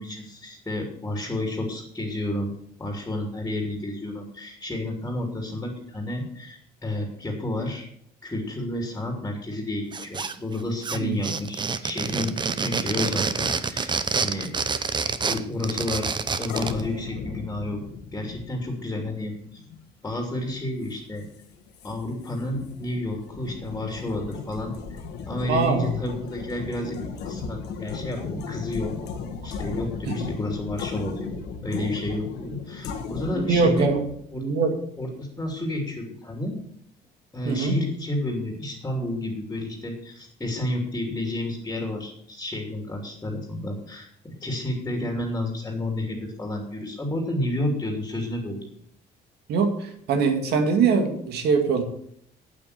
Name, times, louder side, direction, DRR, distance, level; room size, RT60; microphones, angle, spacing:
voice 1, 0.0-2.5 2.8-7.9 8.2-14.5 15.0-17.8 18.1-19.6 20.0-21.2 21.8-25.0 25.2-27.0 27.2-28.9 29.4-31.3 31.6-33.9 34.3-34.4 35.0-36.6 37.3-48.7, left 1 dB, 15° left, 1 dB, 2.9 m, -31 dB
sound 1, 9.9-10.6 10.8-16.8, right 5 dB, 25° right, 0.8 m, -27 dB
sound 2, 16.5-34.1, left 5 dB, 80° left, 2.0 m, -36 dB
voice 2, 25.5-25.9 30.1-30.2 33.3-34.1 34.4-34.7 37.4-37.8 49.5-51.8, right 4 dB, 75° right, 5 dB, 2.3 m, -22 dB
8.9 x 8.7 x 6.7 m, 0.67 s
cardioid pair, 110°, 17 cm